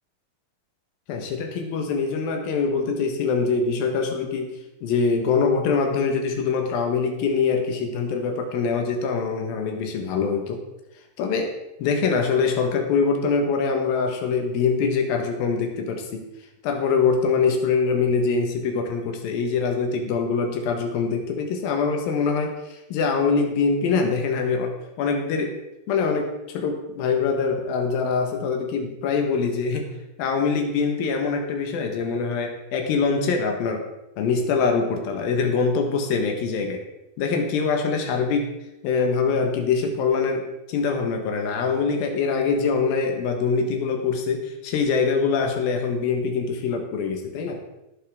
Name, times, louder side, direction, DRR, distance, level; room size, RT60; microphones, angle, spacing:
voice 1, 1.1-4.5 4.8-10.6 11.2-11.5 11.8-16.3 16.6-25.6 25.9-29.9 30.2-33.9 34.2-36.8 37.2-38.5 38.8-47.6, left 5 dB, 85° left, 3 dB, 3.1 m, -24 dB
17.0 x 7.3 x 3.6 m, 0.93 s
omnidirectional pair, 4.1 m